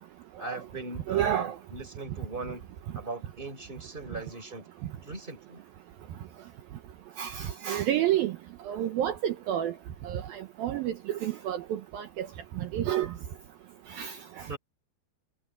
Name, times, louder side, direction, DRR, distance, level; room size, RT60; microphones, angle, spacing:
voice 1, 0.4-1.5 1.7-2.6 2.9-4.7 5.0-5.6 14.5-14.6, right 3 dB, 10° right, 3.3 m, -39 dB
voice 2, 1.1-1.6 7.2-8.4 8.7-9.7 10.0-12.3 12.6-13.1 13.9-14.5, right 11 dB, 75° right, 2.2 m, -30 dB
omnidirectional pair, 5.3 m